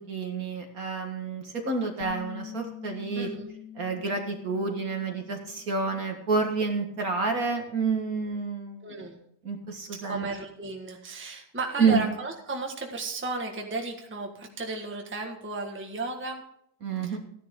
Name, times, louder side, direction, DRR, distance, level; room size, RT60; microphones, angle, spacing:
voice 1, 0.0-3.3 3.8-8.9 9.4-10.3 11.8-12.0 16.8-17.2, right 4 dB, 50° right, 3 dB, 2.0 m, -29 dB
Bass guitar, 2.0-6.3 6.6-8.2, left 10 dB, 70° left, 1.7 m, -46 dB
voice 2, 3.1-3.5 8.8-9.2 10.0-16.4 17.0-17.2, right 3 dB, 5° right, 1 dB, 1.4 m, -34 dB
15.0 x 10.5 x 3.7 m, 0.72 s
omnidirectional pair, 2.1 m